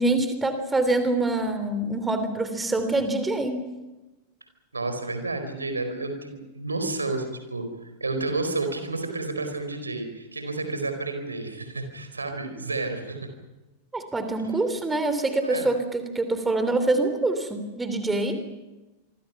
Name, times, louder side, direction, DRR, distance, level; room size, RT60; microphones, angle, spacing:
voice 1, 0.0-3.6 13.9-18.4, right 2 dB, 10° right, 9 dB, 3.2 m, -25 dB
voice 2, 4.7-13.3 15.4-15.7, right 3 dB, 80° right, 7 dB, 4.3 m, -31 dB
26.5 x 25.0 x 5.9 m, 1.1 s
figure-of-eight pair, 90°, 0 cm